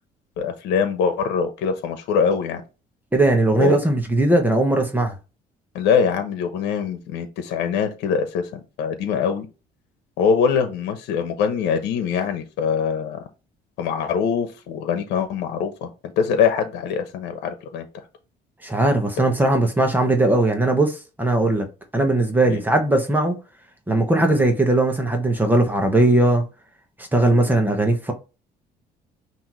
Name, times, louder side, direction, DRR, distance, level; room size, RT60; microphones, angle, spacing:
voice 1, 0.4-2.6 3.5-3.8 5.7-9.5 10.2-13.2 13.8-17.9 22.4-22.6, left 6 dB, 85° left, 1.0 m, -23 dB
voice 2, 3.1-5.1 18.6-21.7 21.9-23.3 23.9-26.4 27.1-28.1, right 2 dB, 10° right, 1.2 m, -19 dB
5.7 x 2.9 x 3.1 m
cardioid pair, 110°, 17 cm